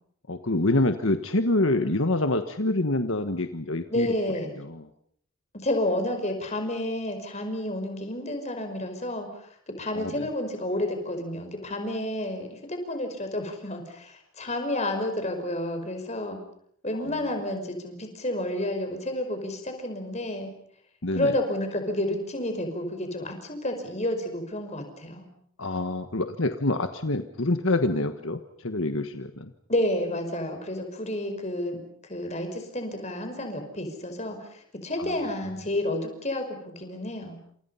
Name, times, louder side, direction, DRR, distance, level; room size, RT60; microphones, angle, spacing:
voice 1, 0.3-4.1 4.6-4.8 9.9-10.3 17.0-17.2 21.0-21.3 25.6-29.5 35.0-35.1, left 2 dB, 65° left, 8 dB, 1.4 m, -26 dB
voice 2, 3.9-4.5 5.6-9.3 9.8-16.4 16.8-20.5 21.1-25.3 29.7-31.8 32.1-34.4 34.8-37.4, left 1 dB, 30° left, 6 dB, 5.4 m, -30 dB
30.0 x 27.5 x 5.7 m, 0.65 s
head